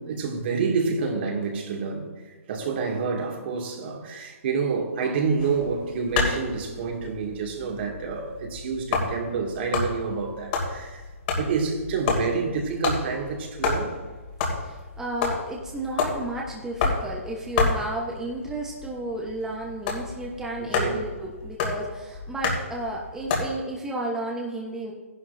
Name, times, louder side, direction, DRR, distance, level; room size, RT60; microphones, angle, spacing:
voice 1, 0.0-11.0 11.3-13.9 20.6-21.0, right 5 dB, 50° right, 1 dB, 2.4 m, -28 dB
sound 1, 5.4-23.6, left 4 dB, 45° left, 2.8 m, -30 dB
voice 2, 14.6-24.9, right 1 dB, 5° right, -3 dB, 1.2 m, -33 dB
14.0 x 11.0 x 2.7 m, 1.2 s
hypercardioid pair, 145°, 7 cm